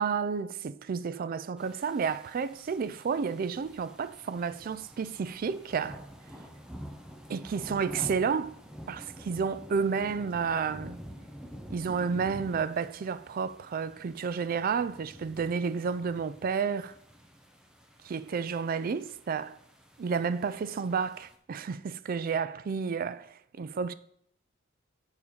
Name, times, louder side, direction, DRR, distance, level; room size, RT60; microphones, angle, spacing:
voice 1, 0.0-6.0 7.3-8.6 8.9-11.0 11.7-16.9 18.0-19.6 20.0-23.9, right 5 dB, 45° right, 0.3 m, -31 dB
sound 1, 1.6-21.4, equal, 5° right, 0.7 m, -48 dB
7.0 x 4.9 x 5.5 m
head